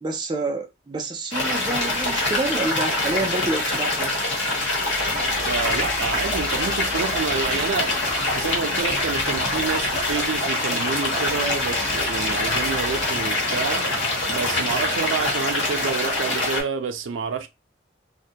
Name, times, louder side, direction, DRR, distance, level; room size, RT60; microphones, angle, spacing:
voice 1, 0.0-4.1, right 2 dB, 25° right, 0.3 m, -28 dB
sound 1, 1.3-16.6, left 2 dB, 80° left, 1.1 m, -24 dB
sound 2, 4.9-10.4, equal, 35° left, 1.0 m, -42 dB
voice 2, 5.5-13.9 14.3-17.5, right 5 dB, 90° right, 0.4 m, -28 dB
2.4 x 2.2 x 2.7 m
head